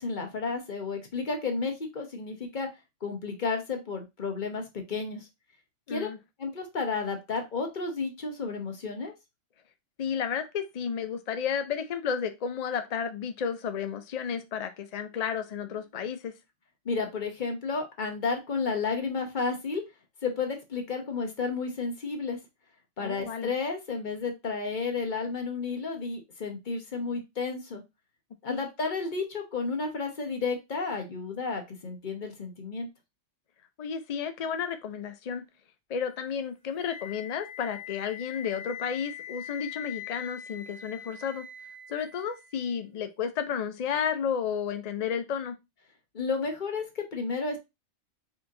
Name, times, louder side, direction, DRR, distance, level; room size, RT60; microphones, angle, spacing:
voice 1, 0.0-2.7 3.0-5.3 5.9-6.1 6.4-9.1 16.8-19.8 20.2-22.4 23.0-27.8 28.4-32.9 46.1-47.6, left 4 dB, 40° left, 4 dB, 1.1 m, -32 dB
voice 2, 10.0-16.3 23.0-23.5 28.5-28.6 33.8-35.5 35.9-41.5 41.9-45.6, left 7 dB, 70° left, 8 dB, 0.3 m, -32 dB
Wind instrument woodwind instrument, 36.8-42.7, left 8 dB, 5° left, 1.7 m, -43 dB
4.4 x 2.8 x 3.6 m, 0.22 s
omnidirectional pair, 1.3 m